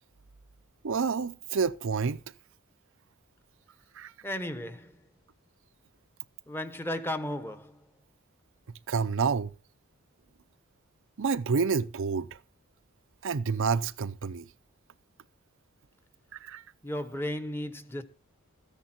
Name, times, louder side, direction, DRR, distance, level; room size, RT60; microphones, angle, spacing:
voice 1, 0.8-2.2 4.0-4.1 8.9-9.5 11.2-12.3 13.2-14.4 16.4-16.6, right 5 dB, 60° right, 0.6 m, -28 dB
voice 2, 4.2-5.0 6.5-7.8 16.8-18.0, left 1 dB, 10° left, 1.0 m, -34 dB
14.0 x 10.5 x 4.4 m
head